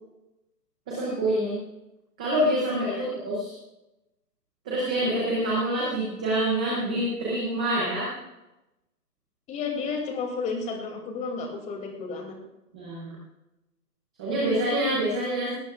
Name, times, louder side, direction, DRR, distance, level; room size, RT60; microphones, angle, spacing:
voice 1, 0.9-1.6 2.2-3.5 4.7-8.1 12.7-13.2 14.2-15.5, right 1 dB, 5° right, -7 dB, 0.5 m, -26 dB
voice 2, 9.5-12.4, left 4 dB, 15° left, 4 dB, 2.7 m, -32 dB
18.5 x 18.0 x 2.4 m, 0.95 s
hypercardioid pair, 145°, 47 cm